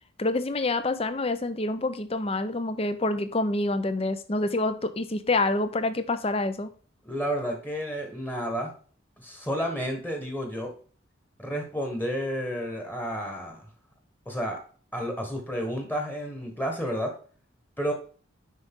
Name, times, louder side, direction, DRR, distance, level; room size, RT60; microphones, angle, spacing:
voice 1, 0.2-6.7, left 2 dB, 30° left, 11 dB, 0.6 m, -27 dB
voice 2, 7.0-8.7 9.2-10.7 11.4-13.7 14.2-14.6 14.9-17.1 17.8-17.9, equal, 10° left, 3 dB, 1.3 m, -31 dB
6.3 x 5.2 x 3.7 m, 0.42 s
head